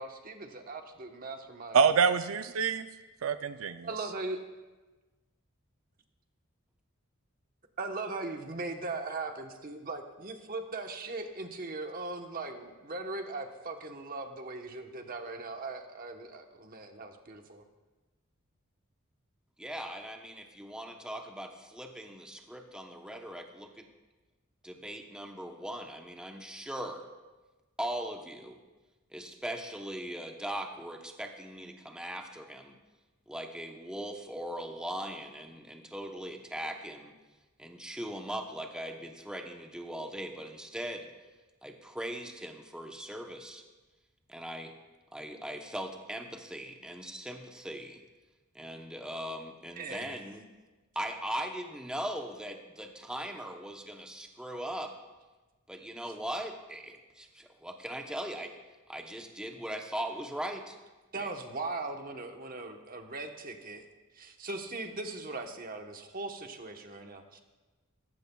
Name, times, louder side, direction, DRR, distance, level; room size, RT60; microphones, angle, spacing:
voice 1, 0.0-1.8 3.8-4.4 7.8-17.6 49.8-50.2 61.1-63.8 64.1-67.4, right 3 dB, 45° right, 4 dB, 1.1 m, -39 dB
voice 2, 1.7-2.9 3.2-4.1, right 6 dB, 80° right, 10 dB, 0.5 m, -26 dB
voice 3, 19.6-23.9 24.6-27.0 27.8-28.6 29.1-32.8 33.3-37.1 37.6-41.1 41.6-43.6 44.3-44.7 45.1-48.0 48.5-50.4 50.9-54.9 55.7-58.5 58.9-60.8 61.2-61.3, right 1 dB, 5° right, 3 dB, 0.8 m, -39 dB
17.5 x 15.0 x 2.3 m, 1.2 s
head